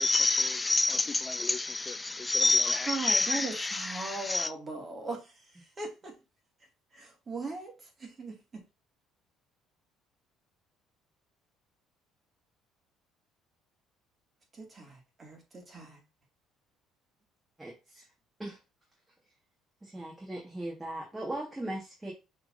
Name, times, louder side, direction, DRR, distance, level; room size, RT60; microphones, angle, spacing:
voice 1, 0.0-4.5, left 3 dB, 15° left, 0.5 m, -28 dB
voice 2, 2.9-6.2 6.9-8.6 14.5-16.0, right 3 dB, 30° right, 2.0 m, -39 dB
voice 3, 17.6-18.0 18.4-18.6 19.8-22.1, right 1 dB, 10° right, 1.5 m, -38 dB
5.8 x 3.4 x 2.6 m
cardioid pair, 105°, 0 cm